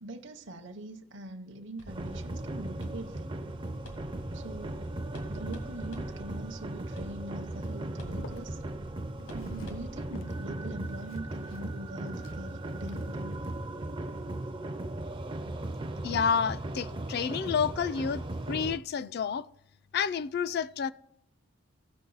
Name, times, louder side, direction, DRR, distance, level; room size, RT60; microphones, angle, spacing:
voice 1, 0.0-3.4 4.3-4.9 5.3-8.6 9.3-13.4, right 1 dB, 55° right, 0.7 m, -43 dB
sound 1, 1.8-10.1, right 1 dB, 85° left, 2.1 m, -49 dB
sound 2, 1.9-18.8, right 1 dB, 25° right, 0.4 m, -37 dB
Walk footsteps, 8.0-9.9 10.1-10.4 10.8-13.5 14.0-14.3, left 1 dB, 65° left, 0.7 m, -49 dB
voice 2, 16.0-19.5 19.9-20.9, left 6 dB, 45° left, 0.3 m, -30 dB
15.5 x 6.1 x 3.9 m
head